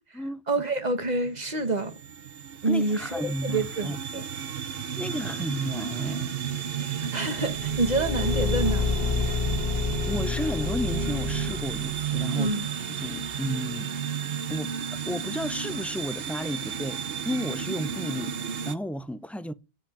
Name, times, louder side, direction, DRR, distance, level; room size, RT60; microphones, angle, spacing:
voice 1, 0.5-1.9 2.6-4.2 6.8-9.4 12.3-12.7, right 2 dB, 40° right, 1.6 m, -28 dB
sound 1, 0.8-18.8, right 8 dB, 65° right, 1.0 m, -33 dB
voice 2, 2.7-4.0 5.0-6.4 10.1-12.6 12.9-13.9 14.5-19.5, equal, ahead, 0.4 m, -33 dB
Car / Engine, 7.5-12.0, left 4 dB, 75° left, 1.3 m, -28 dB
8.8 x 8.1 x 8.6 m
omnidirectional pair, 1.1 m